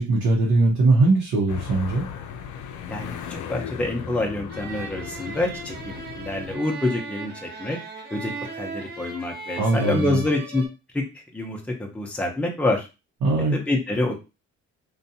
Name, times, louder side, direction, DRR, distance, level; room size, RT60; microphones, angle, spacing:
voice 1, 0.0-2.0 9.6-10.2 13.2-13.6, right 2 dB, 75° right, -2 dB, 0.8 m, -20 dB
sound 1, 1.5-6.6, left 7 dB, 75° left, 0.5 m, -37 dB
voice 2, 3.5-7.8 8.1-8.3 8.6-10.6 10.9-11.0 11.3-12.9 13.5-14.2, left 2 dB, 5° left, 1 dB, 0.6 m, -26 dB
sound 2, 4.5-10.7, right 3 dB, 35° right, 0.7 m, -37 dB
2.6 x 2.2 x 2.7 m, 0.28 s
cardioid pair, 90°, 30 cm